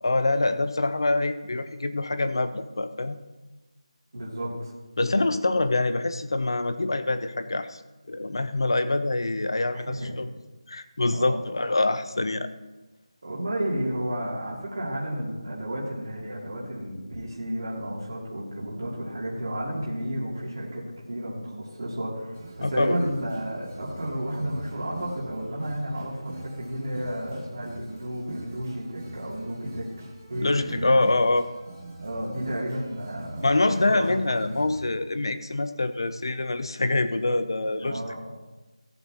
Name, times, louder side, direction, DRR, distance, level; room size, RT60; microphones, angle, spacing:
voice 1, 0.0-3.2 5.0-7.8 8.1-10.3 10.7-12.5 22.6-23.0 30.4-31.5 33.4-38.0, left 2 dB, 45° left, 11 dB, 0.6 m, -25 dB
voice 2, 4.1-4.7 9.7-10.1 11.1-11.4 13.2-29.9 30.3-30.9 32.0-34.4 37.8-38.2, equal, 35° right, -5 dB, 2.9 m, -32 dB
sound 1, 22.3-34.8, right 2 dB, 20° right, 1.0 m, -43 dB
18.0 x 8.0 x 3.0 m, 1.1 s
figure-of-eight pair, 180°, 4 cm